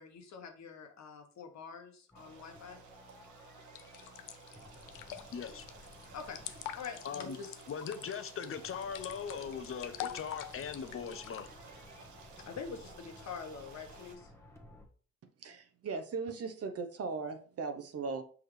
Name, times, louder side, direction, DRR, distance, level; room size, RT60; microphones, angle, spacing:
voice 1, 0.0-2.8 6.1-6.4 6.7-7.5 12.4-14.3, left 5 dB, 65° left, 1.3 m, -45 dB
sound 1, 2.1-14.9, left 1 dB, 10° left, 1.2 m, -56 dB
Stream, 2.2-14.1, right 5 dB, 75° right, 1.3 m, -56 dB
sound 2, 3.8-11.5, left 12 dB, 90° left, 0.5 m, -45 dB
voice 2, 5.3-5.7 7.0-7.4 7.7-11.5, left 7 dB, 45° left, 0.9 m, -40 dB
voice 3, 15.2-18.2, right 4 dB, 50° right, 0.9 m, -38 dB
6.0 x 4.8 x 3.3 m
cardioid pair, 90°, 30 cm